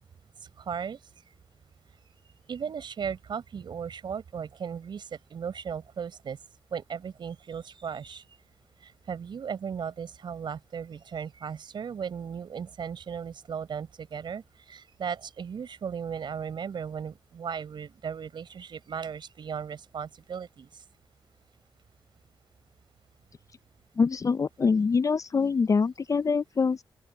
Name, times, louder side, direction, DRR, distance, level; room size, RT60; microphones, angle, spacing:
voice 1, 0.6-1.0 2.5-6.4 6.7-8.2 8.8-20.7, right 7 dB, 65° right, 4.3 m, -36 dB
voice 2, 24.0-26.8, left 5 dB, 40° left, 0.5 m, -24 dB
open air
cardioid pair, 60°, 8 cm